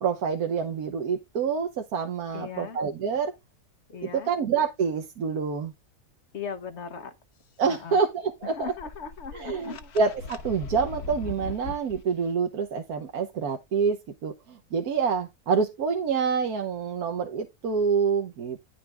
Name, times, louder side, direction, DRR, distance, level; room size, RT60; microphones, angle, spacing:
voice 1, 0.0-3.3 4.1-5.7 7.6-8.7 9.3-18.6, right 5 dB, 80° right, 1.5 m, -27 dB
voice 2, 2.3-2.8 3.9-4.3 6.3-7.2 7.7-8.0 8.4-9.9, left 6 dB, 50° left, 1.3 m, -38 dB
sound 1, 8.4-12.0, left 4 dB, 85° left, 1.5 m, -39 dB
10.5 x 6.0 x 3.4 m
omnidirectional pair, 1.6 m